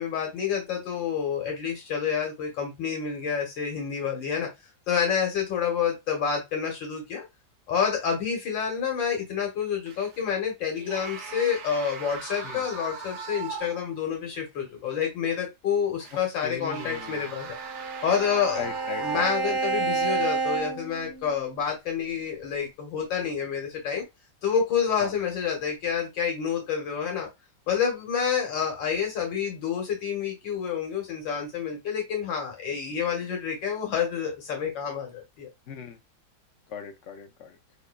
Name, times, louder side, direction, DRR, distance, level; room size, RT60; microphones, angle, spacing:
voice 1, 0.0-4.5 4.9-7.2 7.7-17.5 18.0-18.7 19.0-24.0 24.4-27.3 27.7-35.5, left 7 dB, 90° left, 1.9 m, -28 dB
sound 1, 9.9-10.3 10.7-14.0 14.4-14.5 16.0-19.7 20.4-20.6, right 5 dB, 75° right, 0.6 m, -40 dB
voice 2, 16.4-17.3 18.6-20.1 25.0-25.1 35.7-36.0 36.7-37.6, left 6 dB, 55° left, 0.9 m, -39 dB
Bowed string instrument, 17.1-21.6, right 4 dB, 35° left, 2.6 m, -30 dB
6.6 x 2.7 x 2.3 m
omnidirectional pair, 1.9 m